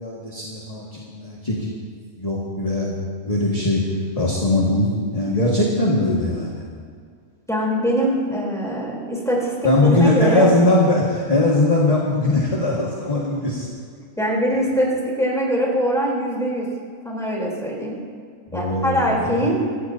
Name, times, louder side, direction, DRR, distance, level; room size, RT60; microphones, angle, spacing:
voice 1, 0.0-1.7 2.2-3.0 3.3-6.7 9.6-13.7 18.5-19.6, left 2 dB, 25° left, -5 dB, 1.9 m, -20 dB
voice 2, 7.5-9.5 9.8-10.5 14.2-16.7 17.0-18.0 18.5-19.6, equal, ahead, -4 dB, 3.7 m, -22 dB
26.0 x 14.0 x 2.8 m, 2.1 s
omnidirectional pair, 1.5 m